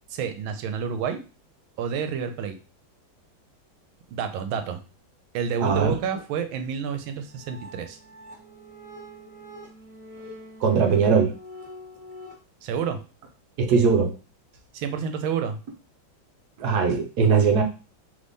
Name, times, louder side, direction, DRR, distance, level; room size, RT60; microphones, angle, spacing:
voice 1, 0.1-1.2 1.8-2.6 4.1-4.8 5.3-8.0 12.6-13.0 14.7-15.6, right 7 dB, 90° right, 8 dB, 1.4 m, -29 dB
voice 2, 5.6-5.9 10.6-11.3 13.6-14.1 16.6-17.6, right 5 dB, 65° right, 4 dB, 1.1 m, -20 dB
sound 1, 7.0-12.3, left 1 dB, 20° left, 1.2 m, -44 dB
3.5 x 3.3 x 3.9 m, 0.34 s
omnidirectional pair, 2.2 m